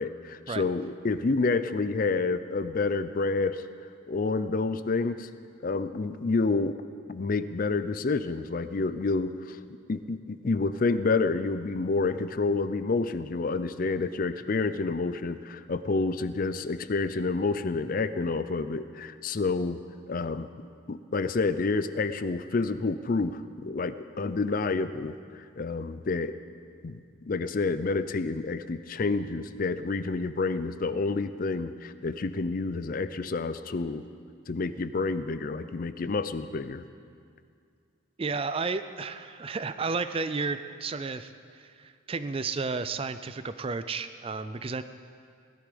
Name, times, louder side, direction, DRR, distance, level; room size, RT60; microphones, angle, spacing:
voice 1, 0.0-3.6 4.1-5.3 5.6-6.8 7.1-9.6 9.9-19.8 20.1-20.5 20.9-26.3 26.8-27.0 27.3-34.0 34.5-36.8, left 3 dB, 40° left, 12 dB, 0.4 m, -29 dB
voice 2, 38.2-41.3 41.8-44.8, right 4 dB, 25° right, 11 dB, 0.4 m, -32 dB
17.5 x 11.5 x 5.2 m, 2.3 s
head